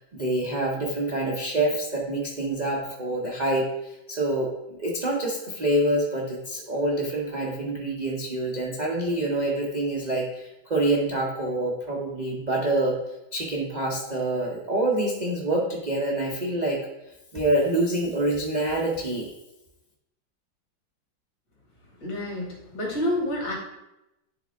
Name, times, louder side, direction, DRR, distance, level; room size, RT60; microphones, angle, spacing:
voice 1, 0.1-12.9 13.3-16.8 17.3-19.3, right 1 dB, 70° right, -3 dB, 0.4 m, -26 dB
voice 2, 22.0-23.5, left 1 dB, 65° left, -2 dB, 2.6 m, -28 dB
10.0 x 3.6 x 3.4 m, 0.91 s
omnidirectional pair, 2.1 m